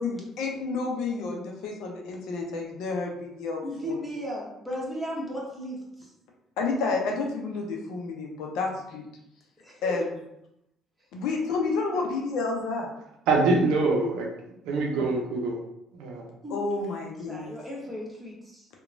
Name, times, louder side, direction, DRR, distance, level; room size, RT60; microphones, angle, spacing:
voice 1, 0.0-3.9 6.6-9.1 9.8-10.1 11.1-12.9 16.5-17.5, left 3 dB, 75° left, 1 dB, 0.5 m, -30 dB
voice 2, 3.6-6.1 9.6-10.0 16.4-16.6 17.3-18.7, equal, 5° right, -4 dB, 1.1 m, -35 dB
voice 3, 13.3-14.3 14.6-15.6 15.9-16.3, right 3 dB, 75° right, 0 dB, 0.5 m, -24 dB
2.9 x 2.2 x 2.5 m, 0.82 s
hypercardioid pair, 60°, 0 cm